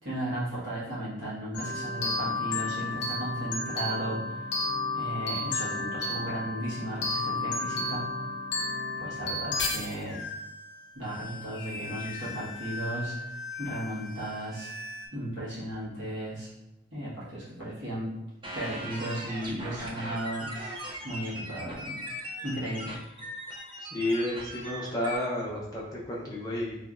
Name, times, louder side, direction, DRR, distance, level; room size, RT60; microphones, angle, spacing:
voice 1, 0.0-4.5 4.9-8.3 9.0-10.2 10.9-13.1 13.6-14.7 15.1-16.5 16.9-18.1 18.5-20.5 21.0-22.1 22.4-23.0, right 1 dB, 80° right, -8 dB, 1.3 m, -35 dB
sound 1, 1.6-15.1, left 2 dB, 60° left, 0.4 m, -33 dB
sound 2, 18.4-25.2, equal, 25° right, 0.5 m, -39 dB
voice 2, 23.8-26.8, left 1 dB, 20° left, -5 dB, 0.7 m, -31 dB
3.2 x 2.7 x 2.4 m, 0.91 s
head